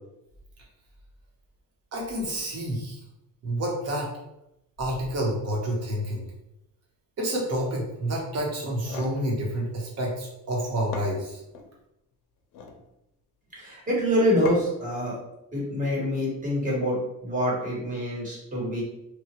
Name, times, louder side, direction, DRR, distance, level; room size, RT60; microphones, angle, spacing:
voice 1, 1.9-3.0 3.4-4.1 4.8-6.3 7.2-11.4, right 1 dB, 45° right, -2 dB, 1.0 m, -29 dB
sound 1, 8.8-9.2 10.5-10.6 10.9-11.7 12.4-12.8 14.4-14.9, left 4 dB, 80° left, 0.6 m, -38 dB
voice 2, 13.5-15.2 15.5-18.8, equal, 25° right, -4 dB, 1.1 m, -26 dB
3.0 x 2.4 x 2.9 m, 0.86 s
cardioid pair, 145°, 34 cm